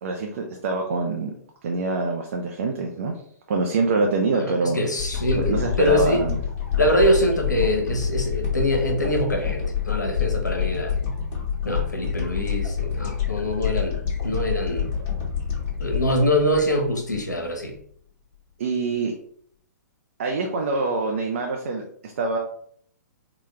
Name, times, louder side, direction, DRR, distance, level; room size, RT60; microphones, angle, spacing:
voice 1, 0.0-1.3 1.6-3.1 3.5-4.8 5.4-6.4 18.6-19.1 20.2-21.8 22.2-22.4, right 3 dB, 45° right, 2 dB, 0.5 m, -25 dB
voice 2, 4.3-6.2 6.8-10.9 11.6-14.9 15.8-17.8, equal, 75° left, 3 dB, 1.0 m, -24 dB
sound 1, 5.0-17.3 17.8-17.9, left 7 dB, 30° left, 1.3 m, -27 dB
3.9 x 2.3 x 3.2 m, 0.62 s
figure-of-eight pair, 120°, 10 cm